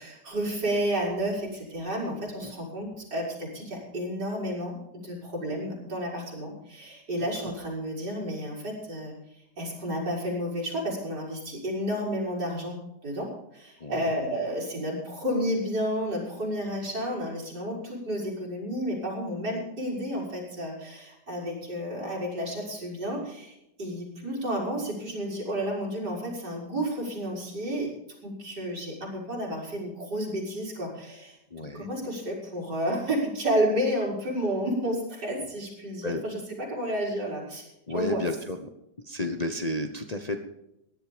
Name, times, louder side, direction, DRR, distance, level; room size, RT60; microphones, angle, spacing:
voice 1, 0.0-9.1 9.6-12.8 13.0-13.3 13.5-27.9 28.2-36.4 36.7-37.6 37.9-38.2, equal, 75° right, -1 dB, 5.9 m, -31 dB
voice 2, 13.8-14.2 31.5-31.9 35.4-35.5 36.0-36.2 37.9-38.7 39.0-40.4, left 1 dB, 30° left, 5 dB, 1.0 m, -32 dB
17.0 x 11.5 x 5.1 m, 0.85 s
omnidirectional pair, 1.8 m